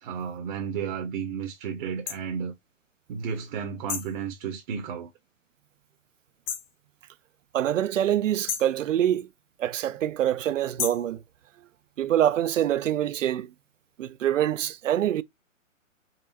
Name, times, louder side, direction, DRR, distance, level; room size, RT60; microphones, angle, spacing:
voice 1, 0.0-2.5 3.1-5.1, right 7 dB, 40° right, 0.8 m, -33 dB
sound 1, 2.1-2.2 3.9-4.2 6.5-6.7 8.5-8.8 10.8-11.1, left 8 dB, 25° left, 0.6 m, -32 dB
voice 2, 7.5-9.3 9.6-11.2 12.0-13.5 14.0-15.2, right 11 dB, 70° right, 0.5 m, -25 dB
4.1 x 3.3 x 2.6 m
figure-of-eight pair, 125°, 39 cm